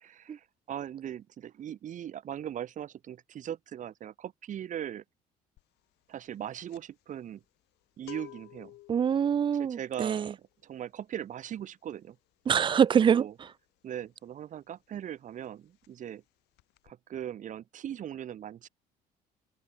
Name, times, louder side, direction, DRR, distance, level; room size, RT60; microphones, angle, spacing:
voice 1, 0.0-5.0 6.1-7.4 8.0-8.7 9.6-10.4 10.6-12.2 13.0-13.3 13.8-16.2 16.8-18.7, right 10 dB, 50° right, 1.0 m, -39 dB
sound 1, 5.6-5.8 6.1-14.7 14.9-15.2 15.4-16.3 16.5-16.9, left 19 dB, 90° left, 3.4 m, -53 dB
voice 2, 8.9-10.3 12.5-13.5, right 8 dB, 30° right, 0.4 m, -25 dB
cardioid pair, 110°, 17 cm